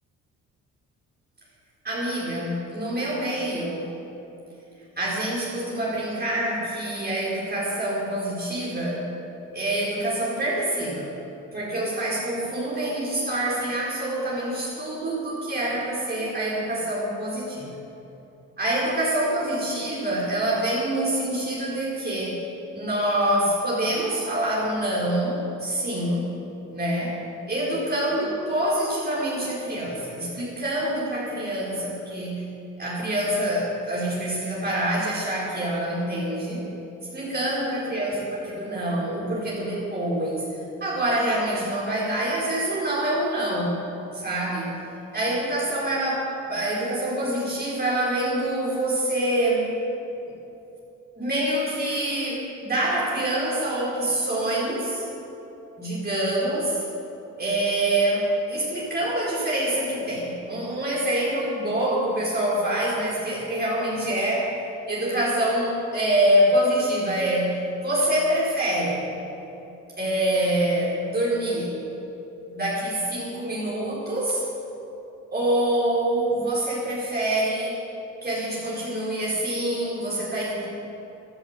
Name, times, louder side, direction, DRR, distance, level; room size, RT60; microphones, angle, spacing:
voice 1, 1.8-3.9 5.0-9.1 9.5-11.1 11.5-17.8 18.6-22.4 22.7-26.3 26.7-27.1 27.5-32.5 32.8-36.6 37.1-40.5 40.8-43.8 44.1-44.7 45.1-49.7 51.2-55.0 55.8-56.8 57.4-67.6 67.8-69.0 70.0-71.8 72.5-74.5 75.3-77.8 78.2-80.7, right 1 dB, 30° right, -7 dB, 4.8 m, -26 dB
14.5 x 11.0 x 8.2 m, 3.0 s
cardioid pair, 90°, 30 cm